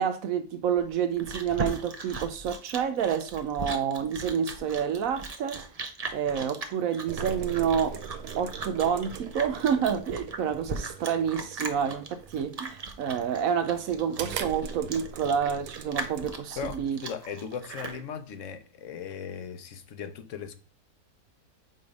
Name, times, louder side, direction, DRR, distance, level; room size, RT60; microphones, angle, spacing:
voice 1, 0.0-5.6 6.1-8.0 8.4-17.0, right 8 dB, 65° right, 0.9 m, -28 dB
Chewing mastication, 0.8-18.0, right 3 dB, 35° right, 0.6 m, -38 dB
sound 1, 7.1-16.4, right 7 dB, 85° right, 1.3 m, -41 dB
voice 2, 16.6-20.5, left 7 dB, 60° left, 1.0 m, -38 dB
7.9 x 3.3 x 5.2 m
omnidirectional pair, 1.7 m